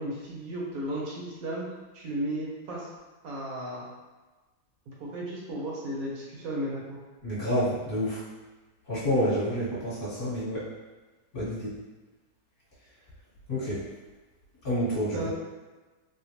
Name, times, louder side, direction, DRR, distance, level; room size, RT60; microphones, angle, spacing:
voice 1, 0.0-1.7 1.9-2.9 3.2-3.8 4.9-7.0 15.1-15.3, right 1 dB, 65° right, -4 dB, 1.1 m, -34 dB
voice 2, 7.2-8.2 8.9-10.6 11.3-11.7 13.5-13.8 14.6-15.3, equal, 35° left, -10 dB, 1.3 m, -28 dB
3.5 x 2.2 x 2.9 m, 1.2 s
omnidirectional pair, 1.8 m